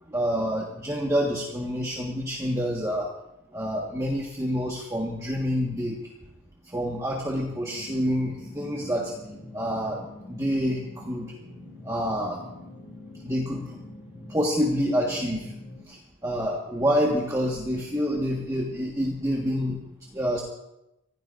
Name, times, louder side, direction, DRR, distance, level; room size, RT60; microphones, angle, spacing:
voice 1, 0.1-3.1 3.5-6.0 6.7-9.1 9.5-11.3 11.8-12.4 13.2-13.7 14.3-15.5 15.9-19.8 20.1-20.4, equal, 15° right, -3 dB, 1.5 m, -27 dB
sound 1, 7.4-15.8, left 1 dB, 25° left, 2.5 m, -44 dB
26.0 x 16.0 x 2.6 m, 0.89 s
head